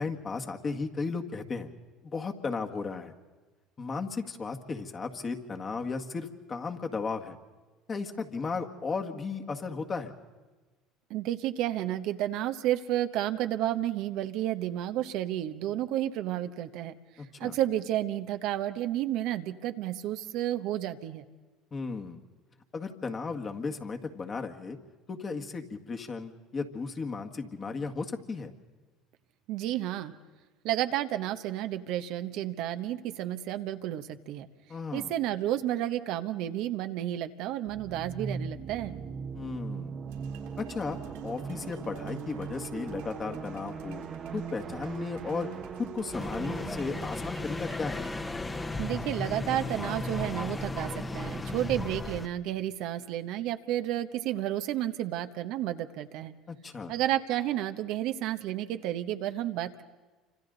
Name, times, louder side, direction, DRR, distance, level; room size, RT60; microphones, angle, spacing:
voice 1, 0.0-1.7 2.1-3.1 3.8-7.4 7.9-10.1 17.2-17.5 21.7-22.2 22.7-24.8 25.1-28.5 34.7-35.1 39.3-39.9 40.6-44.0 44.3-45.5 45.7-48.1 56.5-56.9, left 4 dB, 35° left, 4 dB, 1.9 m, -35 dB
voice 2, 11.1-16.9 17.4-21.2 29.5-30.1 30.6-34.5 34.9-38.9 48.8-56.3 56.9-59.8, right 13 dB, 65° right, 8 dB, 1.0 m, -31 dB
sound 1, 37.7-49.2, right 6 dB, 40° right, 1.1 m, -40 dB
sound 2, 40.1-48.1, right 8 dB, 85° right, 3.7 m, -54 dB
sound 3, 46.1-52.3, left 2 dB, 20° left, 1.2 m, -35 dB
28.5 x 25.5 x 4.0 m, 1.3 s
hypercardioid pair, 80°, 0 cm